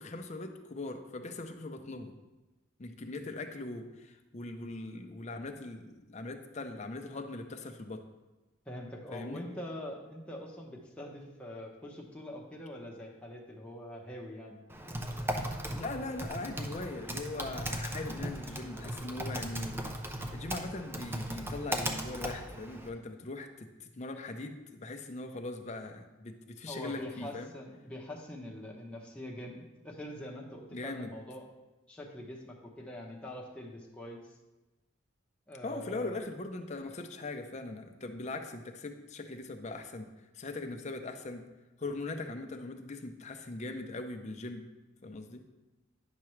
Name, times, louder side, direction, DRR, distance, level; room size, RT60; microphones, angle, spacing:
voice 1, 0.0-2.1 2.8-8.0 9.1-9.4 15.7-19.8 20.3-27.5 30.7-31.1 35.6-40.1 40.3-41.5 41.8-44.7 45.0-45.4, left 2 dB, 35° left, 5 dB, 0.6 m, -40 dB
voice 2, 8.7-14.7 26.7-31.5 31.9-34.2 35.5-36.2, left 1 dB, 5° left, -2 dB, 0.9 m, -44 dB
Typing, 14.7-22.9, right 1 dB, 10° right, 0.5 m, -37 dB
9.6 x 5.9 x 3.2 m, 1.1 s
head